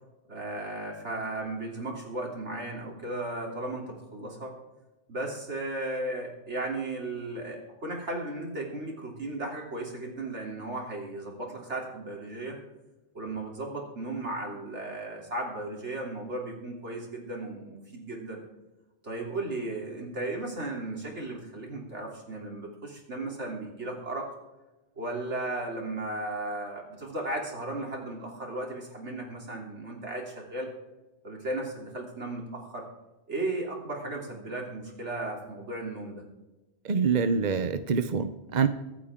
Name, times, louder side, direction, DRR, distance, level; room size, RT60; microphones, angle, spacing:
voice 1, 0.3-4.5 5.1-12.6 13.1-18.4 19.0-24.3 25.0-30.7 31.2-32.9 33.3-36.2, right 2 dB, 75° right, -1 dB, 3.7 m, -35 dB
voice 2, 36.8-38.7, right 5 dB, 45° right, 10 dB, 0.8 m, -26 dB
24.0 x 8.7 x 3.7 m, 1.0 s
omnidirectional pair, 1.2 m